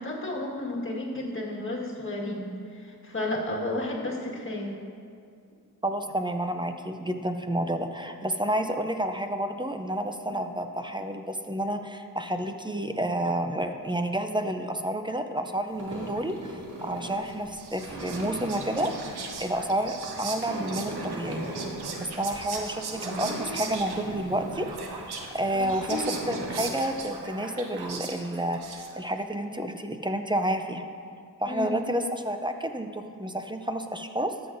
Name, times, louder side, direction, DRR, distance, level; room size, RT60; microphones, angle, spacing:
voice 1, 0.0-4.7 10.3-10.4 25.5-26.0 31.5-31.8, left 2 dB, 30° left, -2 dB, 1.6 m, -32 dB
voice 2, 5.8-21.5 22.2-24.7 25.3-30.8 31.4-34.3, right 1 dB, 15° right, 6 dB, 0.4 m, -30 dB
sound 1, 15.7-26.9, right 1 dB, 50° right, 2.3 m, -39 dB
Whispering, 17.3-29.2, right 4 dB, 90° right, 0.9 m, -39 dB
13.0 x 7.9 x 2.6 m, 2.3 s
wide cardioid pair, 95°, 38 cm